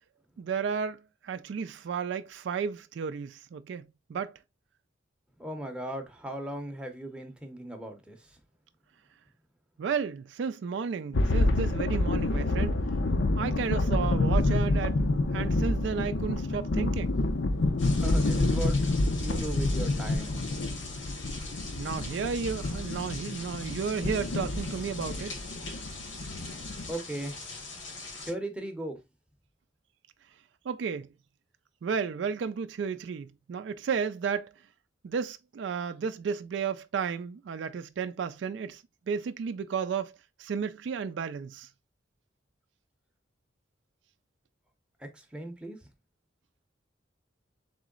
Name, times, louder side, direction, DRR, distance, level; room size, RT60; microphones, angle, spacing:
voice 1, 0.4-4.3 9.8-12.7 13.4-15.0 15.3-17.2 21.8-25.4 30.7-31.1 31.8-34.5 35.0-40.1 40.4-41.7, right 6 dB, 65° right, 0.3 m, -33 dB
voice 2, 5.4-8.2 17.9-18.9 19.2-20.4 26.9-27.3 28.3-29.0 45.1-45.8, right 1 dB, 5° right, 0.7 m, -37 dB
sound 1, 11.1-26.9, left 2 dB, 65° left, 0.6 m, -28 dB
sound 2, 17.8-28.3, left 3 dB, 85° left, 1.8 m, -42 dB
3.8 x 3.1 x 3.7 m
head